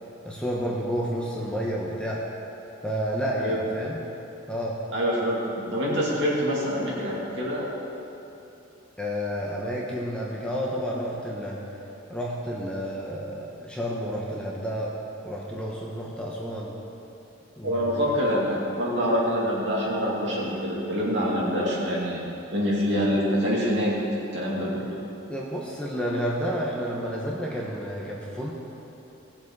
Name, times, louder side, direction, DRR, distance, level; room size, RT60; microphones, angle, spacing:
voice 1, 0.2-2.2 2.8-4.0 4.5-4.8 9.0-11.6 12.1-14.9 15.2-16.7 17.6-18.1 25.3-28.5, equal, 5° left, -4 dB, 1.0 m, -30 dB
voice 2, 4.9-7.7 17.6-22.2 22.5-24.0 24.3-24.9, equal, 55° right, -6 dB, 2.7 m, -25 dB
17.5 x 7.3 x 4.8 m, 2.9 s
head